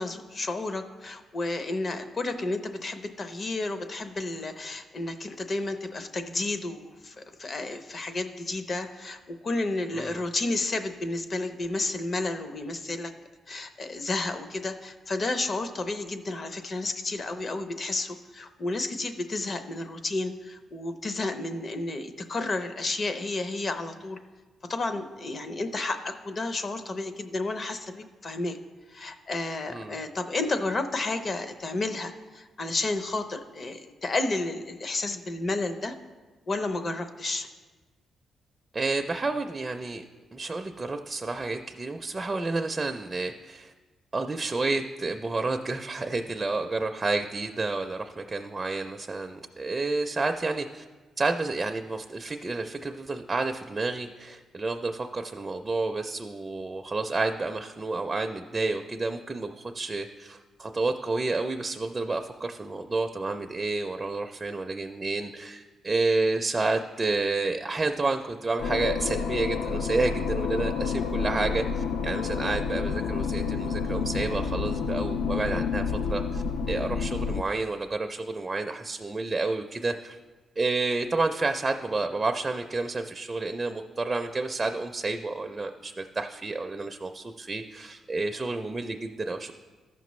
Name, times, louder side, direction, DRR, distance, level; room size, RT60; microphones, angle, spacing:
voice 1, 0.0-13.1 13.5-24.2 24.7-28.6 28.9-35.9 36.5-37.5, left 2 dB, 40° left, 9 dB, 0.7 m, -31 dB
voice 2, 38.7-40.0 40.3-43.7 44.1-50.8 51.2-80.2 80.6-89.5, right 3 dB, 25° right, 5 dB, 0.4 m, -30 dB
sound 1, 68.6-77.4, left 5 dB, 85° left, 0.4 m, -29 dB
14.0 x 5.9 x 3.1 m, 1.3 s
cardioid pair, 110°, 0 cm